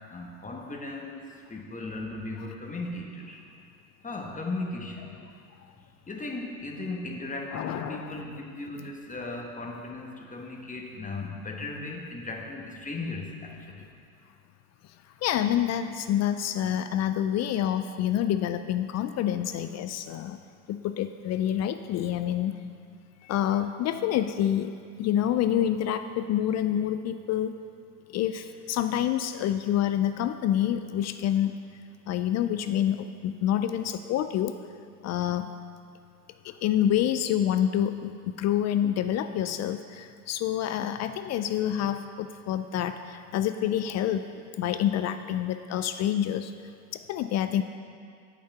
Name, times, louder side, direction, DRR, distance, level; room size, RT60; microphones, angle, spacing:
voice 1, 0.1-3.4 4.0-5.2 6.1-13.9, left 2 dB, 15° left, 1 dB, 1.3 m, -37 dB
voice 2, 7.5-8.2 15.2-20.4 20.7-22.5 23.2-24.7 25.0-27.5 28.1-31.6 32.1-34.6 35.0-35.5 36.4-44.3 44.6-46.5 46.9-47.6, left 10 dB, 40° left, 10 dB, 0.4 m, -27 dB
8.5 x 5.9 x 6.8 m, 2.3 s
hypercardioid pair, 80°, 45 cm